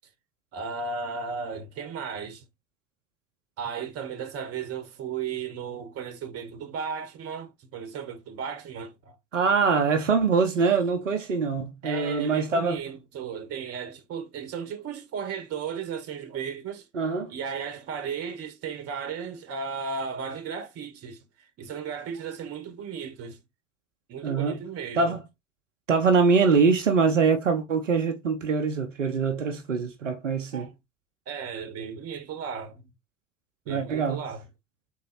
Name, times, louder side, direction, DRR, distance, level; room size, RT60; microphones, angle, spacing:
voice 1, 0.5-2.4 3.6-9.2 11.8-16.9 17.3-23.4 24.1-25.2 30.5-30.7 31.3-32.9 33.6-34.4, right 6 dB, 40° right, 1.2 m, -35 dB
voice 2, 9.3-12.8 16.9-17.3 24.2-24.6 25.0-25.2 25.9-30.7 33.7-34.2, right 5 dB, 85° right, 0.7 m, -23 dB
4.6 x 3.9 x 2.8 m
figure-of-eight pair, 70°, 37 cm